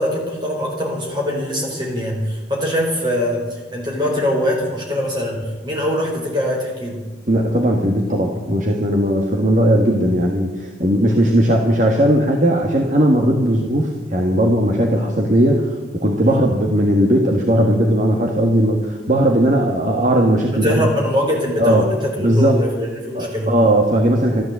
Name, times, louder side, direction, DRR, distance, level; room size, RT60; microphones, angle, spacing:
voice 1, 0.0-7.0 11.0-11.3 16.2-16.4 20.5-23.5, equal, 25° right, -1 dB, 4.5 m, -23 dB
voice 2, 7.3-20.9 21.6-21.8 22.2-22.6 23.1-24.4, right 1 dB, 40° right, 0 dB, 1.6 m, -17 dB
13.5 x 13.0 x 8.1 m, 1.2 s
head